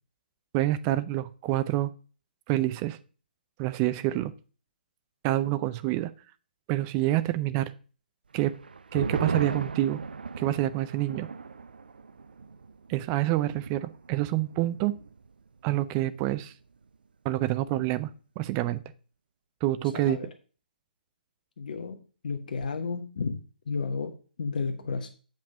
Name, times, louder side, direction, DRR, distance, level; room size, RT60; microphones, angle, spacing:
voice 1, 0.5-1.9 2.5-3.0 3.6-4.3 5.2-6.1 6.7-7.7 8.3-8.5 8.9-10.0 10.4-11.3 12.9-14.9 15.6-16.5 17.2-18.8 19.6-20.2, right 15 dB, 25° right, 14 dB, 0.5 m, -27 dB
sound 1, 8.3-15.3 15.6-15.7 16.1-16.5, right 5 dB, 75° right, 0.5 m, -37 dB
voice 2, 19.9-20.3 21.6-22.0 22.2-23.4 23.7-25.1, left 4 dB, 60° left, 6 dB, 1.0 m, -32 dB
8.1 x 5.3 x 5.1 m, 0.38 s
figure-of-eight pair, 135°, 5 cm